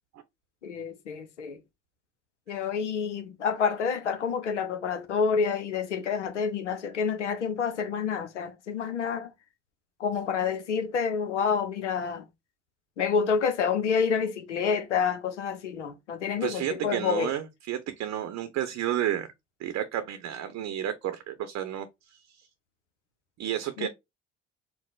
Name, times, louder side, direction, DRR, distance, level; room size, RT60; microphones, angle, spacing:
voice 1, 0.6-1.6 2.5-9.3 10.0-12.3 13.0-17.3 23.8-23.9, left 6 dB, 85° left, 0.6 m, -28 dB
voice 2, 16.4-19.3 19.6-21.9 22.1-22.2 23.4-23.9, right 11 dB, 50° right, 0.7 m, -31 dB
4.6 x 2.0 x 3.8 m
figure-of-eight pair, 50°, 35 cm